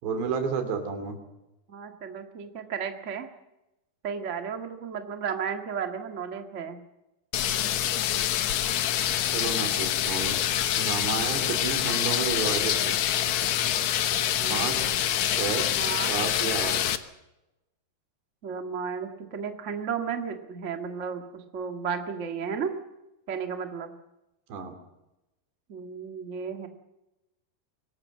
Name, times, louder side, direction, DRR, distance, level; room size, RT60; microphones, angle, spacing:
voice 1, 0.0-1.2 9.3-10.4 10.8-13.0 14.5-14.9 15.3-15.7 16.1-16.8 24.5-24.8, right 5 dB, 85° right, 6 dB, 5.0 m, -31 dB
voice 2, 1.7-3.3 4.0-6.8 14.4-14.9 15.7-16.2 18.4-22.7 23.3-23.9 25.7-26.7, right 6 dB, 40° right, 5 dB, 1.0 m, -33 dB
sound 1, 7.3-17.0, left 11 dB, 75° left, 1.6 m, -26 dB
24.5 x 19.0 x 7.7 m, 0.95 s
omnidirectional pair, 4.8 m